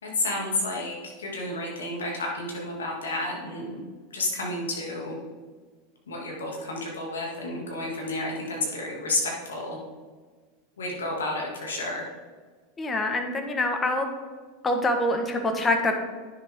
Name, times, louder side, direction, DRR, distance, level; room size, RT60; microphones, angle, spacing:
voice 1, 0.0-3.8 4.1-5.1 6.1-9.8 10.8-12.1, left 2 dB, 85° left, -2 dB, 2.5 m, -31 dB
voice 2, 12.8-14.1 14.6-16.0, left 1 dB, 20° left, 5 dB, 1.6 m, -25 dB
10.0 x 7.1 x 3.8 m, 1.4 s
hypercardioid pair, 90°, 0 cm